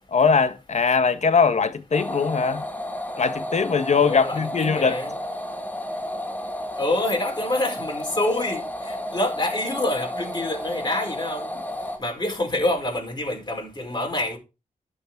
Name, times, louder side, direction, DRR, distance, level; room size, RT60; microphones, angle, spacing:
voice 1, 0.1-2.6 3.2-5.0, left 5 dB, 55° left, 1.4 m, -21 dB
sound 1, 1.9-12.0, left 1 dB, 10° left, 1.9 m, -32 dB
voice 2, 3.9-5.2 6.8-11.5 12.0-14.4, left 1 dB, 30° left, 4.9 m, -27 dB
12.0 x 6.5 x 4.6 m
cardioid pair, 65°, 14 cm